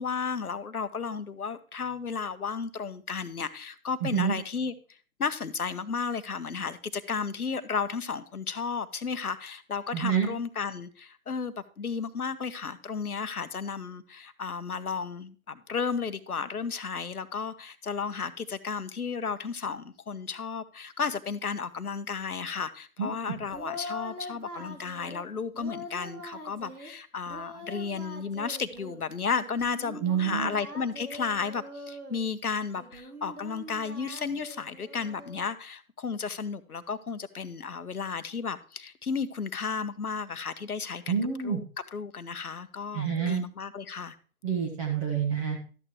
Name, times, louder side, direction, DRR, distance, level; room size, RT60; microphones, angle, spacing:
voice 1, 0.0-41.2 41.4-41.6 41.9-44.2, left 5 dB, 80° left, 1.1 m, -33 dB
voice 2, 4.0-4.3 9.9-10.3 23.0-23.1 30.0-30.5 41.1-41.6 42.9-43.4 44.4-45.6, right 7 dB, 20° right, 1.3 m, -27 dB
Singing, 23.4-25.2 25.5-26.9 27.3-29.0 29.4-32.2 32.8-35.5, equal, 90° right, 2.4 m, -43 dB
12.5 x 9.0 x 3.1 m
figure-of-eight pair, 135°, 44 cm